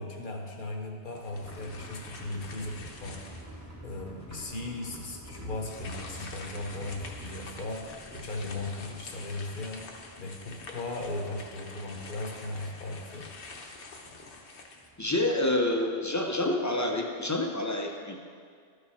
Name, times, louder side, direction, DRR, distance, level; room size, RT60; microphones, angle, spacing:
voice 1, 0.0-3.2 3.8-13.3, left 2 dB, 50° left, 2 dB, 1.0 m, -37 dB
sound 1, 1.1-3.7 4.2-4.3 5.6-15.4, left 3 dB, 75° left, 1.2 m, -47 dB
sound 2, 1.3-16.7 17.0-17.1 17.5-17.6, right 1 dB, 15° right, 1.1 m, -49 dB
voice 2, 15.0-18.2, left 1 dB, 20° left, 2 dB, 0.5 m, -28 dB
13.0 x 4.9 x 4.3 m, 2.1 s
omnidirectional pair, 1.2 m